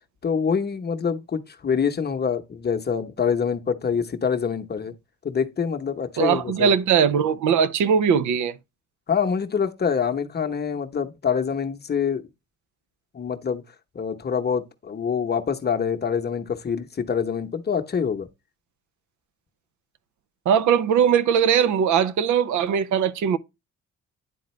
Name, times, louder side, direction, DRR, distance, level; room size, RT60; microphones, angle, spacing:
voice 1, 0.2-4.9 5.2-6.7 9.1-12.2 13.1-13.6 13.9-18.3, left 6 dB, 35° left, 0.9 m, -25 dB
voice 2, 6.2-8.5 20.5-23.4, right 7 dB, 75° right, 0.7 m, -20 dB
10.0 x 3.8 x 3.1 m
cardioid pair, 90°, 30 cm